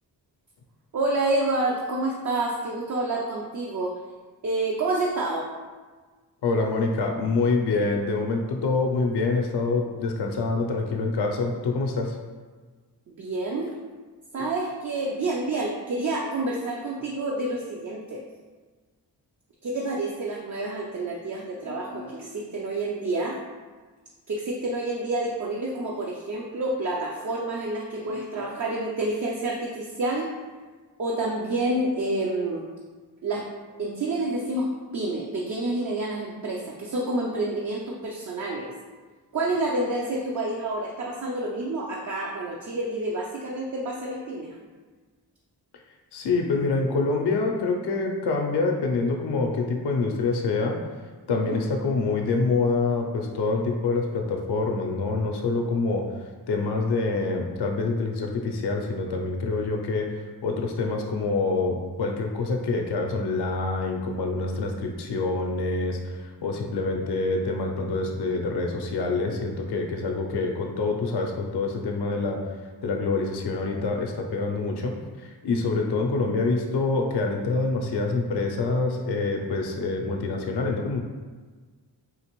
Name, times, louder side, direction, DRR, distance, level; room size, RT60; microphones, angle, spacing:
voice 1, 0.9-4.0 4.4-5.5 13.1-13.7 14.3-18.2 19.6-23.4 24.3-30.3 31.0-32.6 33.2-33.5 33.8-38.8 39.3-44.6 51.4-51.6, right 2 dB, 45° right, -2 dB, 0.5 m, -28 dB
voice 2, 6.4-12.2 46.1-50.8 51.3-56.0 56.5-72.4 72.8-81.0, left 3 dB, 65° left, 2 dB, 0.5 m, -26 dB
3.8 x 2.5 x 2.9 m, 1.4 s
cardioid pair, 55°, 43 cm